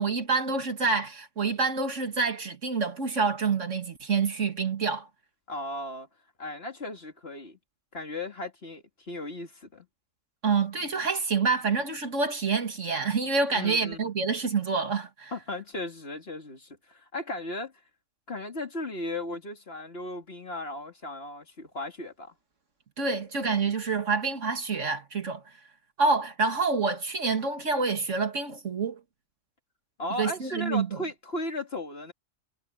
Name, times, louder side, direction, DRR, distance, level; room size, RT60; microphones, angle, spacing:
voice 1, 0.0-5.1 10.4-15.3 23.0-25.4 26.0-29.0 30.2-31.0, right 4 dB, 60° right, 2.4 m, -27 dB
voice 2, 5.5-6.1 6.4-7.6 7.9-9.9 13.5-14.1 15.3-17.7 18.3-22.3 30.0-32.1, left 2 dB, 45° left, 2.7 m, -36 dB
omnidirectional pair, 1.4 m